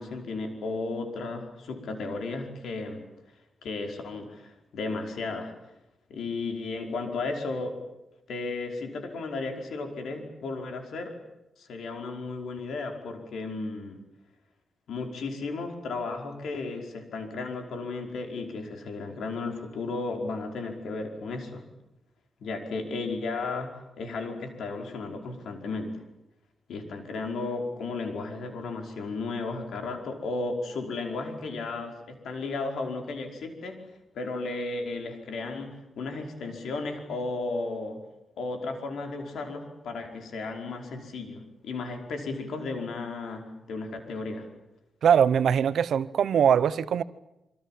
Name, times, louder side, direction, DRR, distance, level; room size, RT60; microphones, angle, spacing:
voice 1, 0.0-3.0 3.6-5.5 6.1-7.7 8.3-11.1 11.6-14.0 14.9-21.6 22.4-23.7 24.0-25.9 26.7-33.8 34.1-38.0 38.4-44.5, left 3 dB, 90° left, 5.1 m, -34 dB
voice 2, 45.0-47.0, right 8 dB, 75° right, 0.9 m, -22 dB
27.5 x 24.5 x 7.6 m
wide cardioid pair, 155°, 0 cm